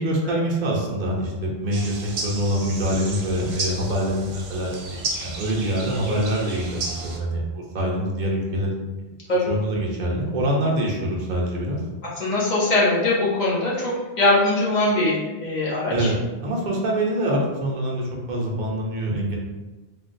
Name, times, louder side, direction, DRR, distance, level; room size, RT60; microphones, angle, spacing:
voice 1, 0.0-8.7 9.5-11.8 15.9-16.1 16.4-19.4, right 1 dB, 50° right, -2 dB, 0.7 m, -25 dB
sound 1, 1.7-7.2, right 2 dB, 75° right, 0.9 m, -33 dB
voice 2, 12.2-16.1, left 2 dB, 40° left, -6 dB, 0.9 m, -21 dB
3.5 x 2.3 x 2.5 m, 1.1 s
omnidirectional pair, 1.2 m